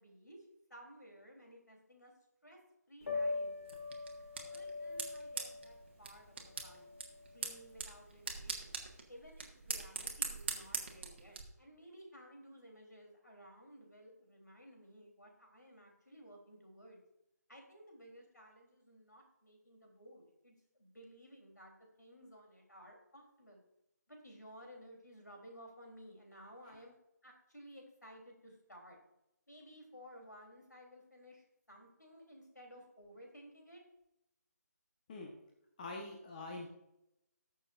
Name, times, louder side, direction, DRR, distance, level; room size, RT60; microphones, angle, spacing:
voice 1, 0.0-2.1 2.4-2.6 2.9-3.5 4.5-6.9 7.2-8.8 9.1-17.0 17.5-23.6 24.1-26.9 27.2-29.0 29.5-33.8, equal, 80° left, 1 dB, 3.5 m, -56 dB
Piano, 3.0-8.9, left 3 dB, 50° left, 2.2 m, -43 dB
sound 1, 3.7-11.4, right 5 dB, 40° right, 1.4 m, -43 dB
voice 2, 35.8-36.7, left 2 dB, 30° left, 1 dB, 1.2 m, -45 dB
19.0 x 6.6 x 2.5 m, 0.87 s
figure-of-eight pair, 150°, 9 cm